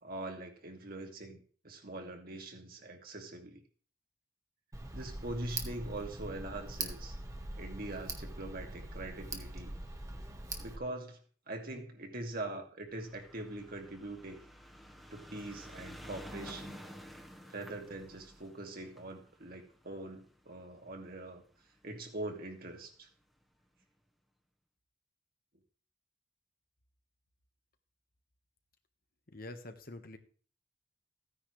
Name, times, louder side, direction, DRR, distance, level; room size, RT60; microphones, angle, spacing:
voice 1, 0.0-3.6 4.9-7.1 7.6-9.7 10.6-11.2 11.5-14.4 15.1-16.8 17.5-21.4 21.8-23.1, right 2 dB, 55° right, 3 dB, 2.3 m, -43 dB
Tick, 4.7-10.8, right 2 dB, 20° right, 1.5 m, -42 dB
sound 1, 12.9-21.4 22.2-22.3 22.5-22.6 22.9-23.0, equal, ahead, 1.4 m, -51 dB
voice 2, 29.3-30.2, left 2 dB, 55° left, 7 dB, 1.4 m, -46 dB
15.5 x 9.8 x 3.3 m, 0.42 s
head